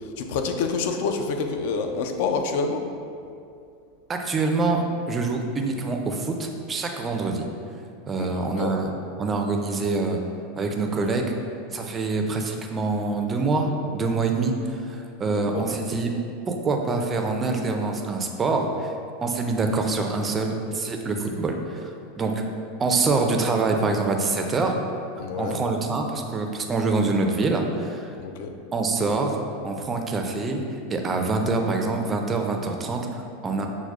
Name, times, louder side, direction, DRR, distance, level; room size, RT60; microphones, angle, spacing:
voice 1, 0.2-2.8 8.2-8.8 15.3-15.7 25.2-25.6 28.2-28.5, left 4 dB, 65° left, 5 dB, 0.3 m, -27 dB
voice 2, 4.1-7.5 8.1-8.9 9.2-10.2 10.6-11.3 11.7-16.1 16.5-18.9 19.2-21.9 22.2-22.4 22.8-24.8 25.4-28.1 28.7-30.6 30.9-33.7, right 3 dB, 20° right, 3 dB, 0.3 m, -25 dB
5.9 x 2.0 x 2.3 m, 2.4 s
supercardioid pair, 130°, 0 cm